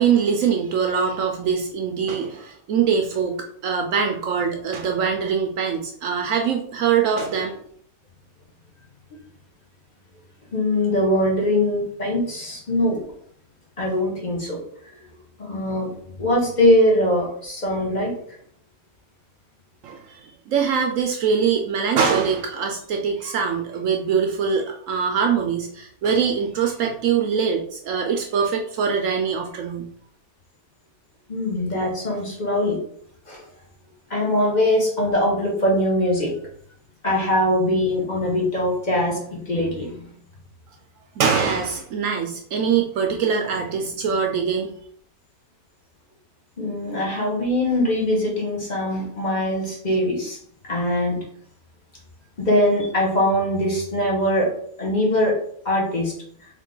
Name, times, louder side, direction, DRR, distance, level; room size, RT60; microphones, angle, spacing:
voice 1, 0.0-7.6 19.8-29.9 41.2-44.7, right 6 dB, 70° right, 3 dB, 0.9 m, -23 dB
voice 2, 10.5-13.0 13.8-14.6 15.4-18.4 31.3-32.8 33.3-33.4 34.1-36.3 37.0-40.1 46.6-50.4 50.6-51.2 52.4-54.5 54.8-55.4 55.6-56.1, left 1 dB, 35° left, -2 dB, 1.1 m, -22 dB
3.6 x 3.2 x 3.8 m, 0.63 s
omnidirectional pair, 1.6 m